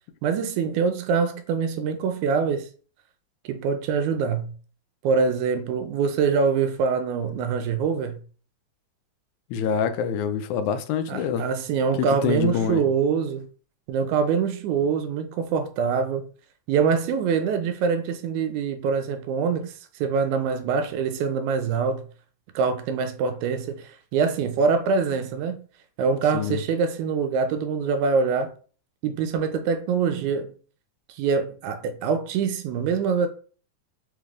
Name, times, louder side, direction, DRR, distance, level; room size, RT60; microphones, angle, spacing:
voice 1, 0.2-2.7 3.5-4.5 5.0-8.2 11.1-13.5 13.9-16.3 16.7-19.7 20.0-22.0 22.6-25.6 26.0-28.5 29.0-30.5 31.2-33.3, right 5 dB, 85° right, 2.0 m, -24 dB
voice 2, 9.5-11.5 12.0-12.8 26.3-26.6, left 7 dB, 85° left, 1.9 m, -26 dB
5.0 x 3.3 x 2.4 m
omnidirectional pair, 3.4 m